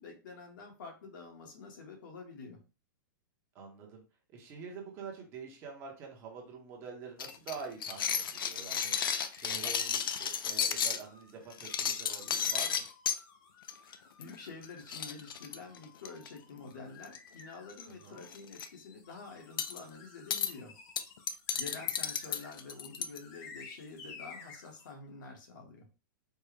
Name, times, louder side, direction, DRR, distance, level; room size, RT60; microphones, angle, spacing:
voice 1, 0.0-2.6 13.8-20.7 21.6-25.9, left 4 dB, 65° left, 2 dB, 1.2 m, -48 dB
voice 2, 3.5-4.0 4.3-12.8 17.9-18.2, right 5 dB, 25° right, 0 dB, 0.8 m, -46 dB
sound 1, 7.2-11.0 11.5-13.2 13.7-13.9 14.2-14.3 14.6-14.7 14.9-16.3 17.0-17.4 17.7-17.9 18.2-18.7 19.6-19.8 20.3-20.5 21.0-23.2, left 8 dB, 85° left, 0.5 m, -33 dB
sound 2, 7.2-24.9, left 4 dB, 25° left, 0.6 m, -55 dB
4.5 x 2.2 x 3.3 m, 0.32 s
supercardioid pair, 165°, 11 cm